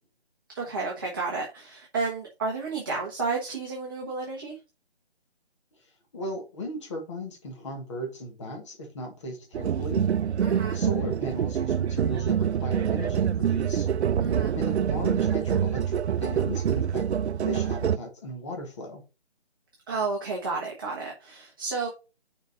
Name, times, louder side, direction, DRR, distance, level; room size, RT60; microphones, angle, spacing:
voice 1, 0.5-4.6 10.4-10.8 14.2-14.5 19.9-21.9, right 4 dB, 20° right, 1.0 m, -31 dB
voice 2, 6.1-10.0 10.7-13.9 14.5-17.1 17.4-19.0, equal, 25° left, 1.5 m, -36 dB
sound 1, 9.5-18.0, right 8 dB, 80° right, 0.5 m, -26 dB
5.2 x 5.1 x 4.9 m
figure-of-eight pair, 165°, 33 cm